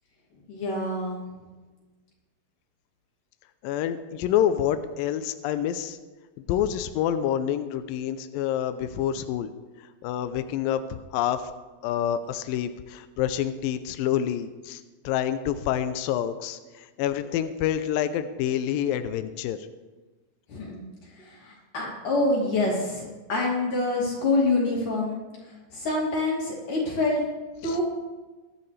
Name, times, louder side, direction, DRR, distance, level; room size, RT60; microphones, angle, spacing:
voice 1, 0.5-1.3 20.5-20.8 21.2-27.2 27.6-27.8, left 2 dB, 60° left, -4 dB, 4.1 m, -26 dB
voice 2, 3.6-6.0 6.5-9.5 9.8-11.5 11.8-19.7 27.6-27.8, left 10 dB, 80° left, 10 dB, 2.3 m, -27 dB
23.0 x 10.5 x 3.3 m, 1.2 s
omnidirectional pair, 4.2 m